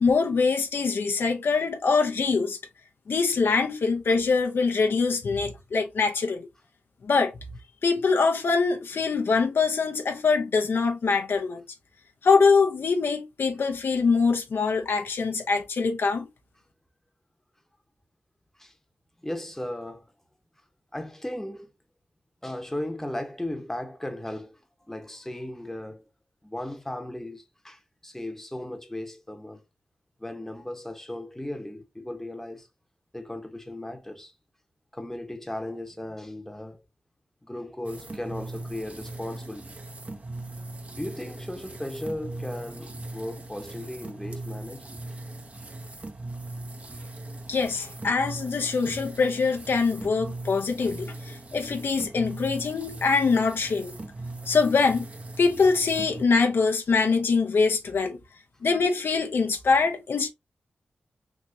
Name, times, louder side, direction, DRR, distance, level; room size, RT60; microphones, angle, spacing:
voice 1, 0.0-2.6 3.1-6.5 7.0-7.3 7.8-11.6 12.2-16.3 47.5-53.9 54.5-55.1 55.4-58.2 58.6-60.3, left 4 dB, 65° left, 0.6 m, -23 dB
voice 2, 19.2-20.1 20.9-21.7 22.4-24.6 24.9-26.0 26.4-29.6 30.2-32.7 33.1-34.3 34.9-36.8 37.4-39.7 40.9-44.9, left 1 dB, 10° left, 0.9 m, -36 dB
sound 1, 37.8-56.3, right 2 dB, 35° right, 0.8 m, -39 dB
3.5 x 3.0 x 2.6 m
supercardioid pair, 40°, 4 cm